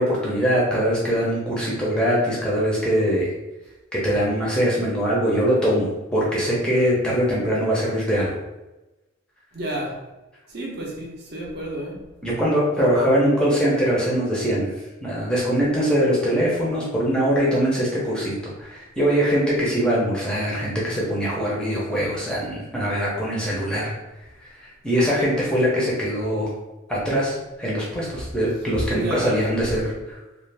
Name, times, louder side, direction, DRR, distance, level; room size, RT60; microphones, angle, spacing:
voice 1, 0.0-3.3 3.9-8.3 12.2-14.7 15.0-23.9 24.4-26.5 26.9-30.2, equal, 5° left, -6 dB, 0.5 m, -22 dB
voice 2, 9.5-10.0 10.5-12.0 28.9-29.4, right 1 dB, 50° right, -2 dB, 0.6 m, -30 dB
2.5 x 2.4 x 3.2 m, 1.0 s
head